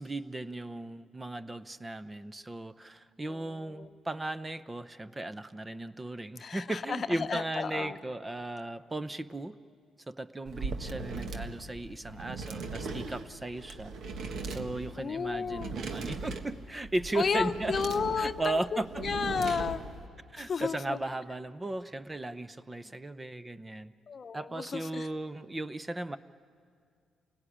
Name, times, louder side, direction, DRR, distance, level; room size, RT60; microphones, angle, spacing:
voice 1, 0.0-9.6 10.1-13.9 14.5-17.8 18.2-19.0 20.3-23.9 24.3-26.2, right 2 dB, 20° right, 13 dB, 0.7 m, -36 dB
voice 2, 3.3-4.0 6.4-8.0 15.0-15.7 17.1-18.6 19.0-19.8 20.4-21.0 24.1-25.1, left 6 dB, 45° left, 10 dB, 0.8 m, -33 dB
sound 1, 10.4-20.1, right 4 dB, 70° right, 1.5 m, -39 dB
28.5 x 18.0 x 10.0 m, 2.3 s
cardioid pair, 90°, 0 cm